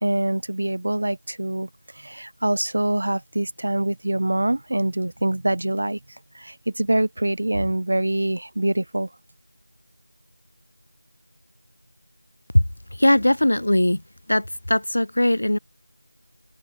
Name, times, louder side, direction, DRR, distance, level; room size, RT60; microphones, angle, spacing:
voice 1, 0.0-9.1, right 1 dB, 55° right, 1.7 m, -25 dB
voice 2, 13.0-14.0 14.3-15.6, left 1 dB, 75° left, 1.1 m, -19 dB
open air
figure-of-eight pair, 175°, 0 cm